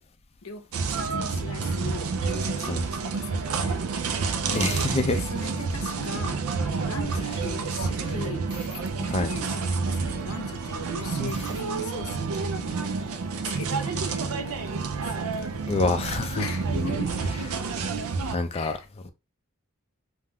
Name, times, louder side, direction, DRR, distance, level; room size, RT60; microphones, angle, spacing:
sound 1, 0.7-18.4, right 4 dB, 75° right, 0.4 m, -29 dB
voice 1, 1.0-3.8 5.1-8.5 9.0-12.9 13.6-15.1 16.4-17.1 18.5-18.9, left 3 dB, 70° left, 0.6 m, -39 dB
voice 2, 4.5-5.2 9.1-9.3 15.7-16.4 18.3-18.8 19.0-19.1, left 3 dB, 30° left, 0.4 m, -26 dB
2.4 x 2.2 x 3.3 m
head